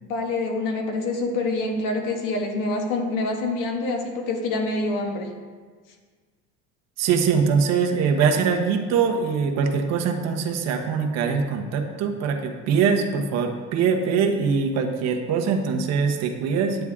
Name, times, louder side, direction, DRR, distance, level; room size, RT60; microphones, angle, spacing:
voice 1, 0.0-5.3, left 2 dB, 70° left, 2 dB, 1.6 m, -26 dB
voice 2, 7.0-16.8, right 6 dB, 50° right, 3 dB, 1.1 m, -23 dB
9.8 x 9.1 x 3.6 m, 1.5 s
cardioid pair, 175°, 32 cm